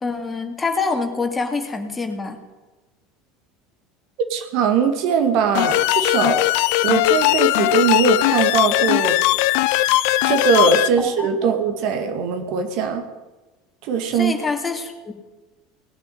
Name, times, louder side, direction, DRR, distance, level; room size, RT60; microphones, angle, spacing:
voice 1, 0.0-2.4 11.0-11.6 14.1-15.1, left 4 dB, 20° left, 5 dB, 2.5 m, -26 dB
voice 2, 4.3-6.4 6.8-9.2 10.2-13.0 13.9-14.3, right 6 dB, 55° right, 6 dB, 2.0 m, -20 dB
sound 1, 5.5-10.9, left 17 dB, 60° left, 0.5 m, -18 dB
19.0 x 7.9 x 9.5 m, 1.2 s
figure-of-eight pair, 70°, 0 cm